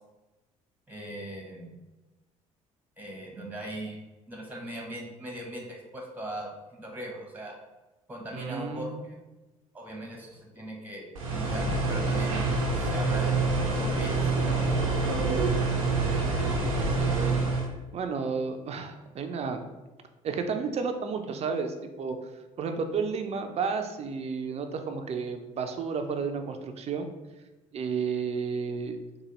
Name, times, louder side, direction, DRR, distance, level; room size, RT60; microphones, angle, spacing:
voice 1, 0.9-1.8 3.0-4.0 4.3-7.5 8.1-9.2 9.7-12.5 12.7-14.5, right 1 dB, 10° right, 0 dB, 1.0 m, -39 dB
voice 2, 8.3-9.1 16.0-17.4 17.9-19.6 20.2-22.2 22.6-27.1 27.7-29.0, right 5 dB, 40° right, 6 dB, 0.5 m, -32 dB
sound 1, 11.1-17.7, right 3 dB, 85° right, 0.5 m, -26 dB
4.1 x 2.2 x 3.0 m, 1.1 s
figure-of-eight pair, 55°, 17 cm